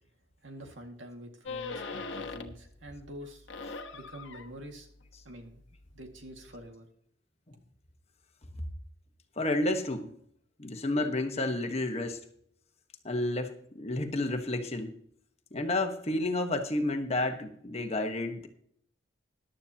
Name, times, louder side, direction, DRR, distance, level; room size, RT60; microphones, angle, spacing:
voice 1, 0.4-3.5 3.9-4.9 5.2-5.6 5.9-6.9, equal, 75° right, 3 dB, 2.0 m, -46 dB
sound 1, 1.5-2.7 3.1-6.7, left 4 dB, 70° left, 1.2 m, -42 dB
voice 2, 9.4-10.1 10.6-12.2 13.0-14.9 15.5-18.5, left 2 dB, 35° left, 5 dB, 1.3 m, -30 dB
14.5 x 11.5 x 2.9 m, 0.64 s
head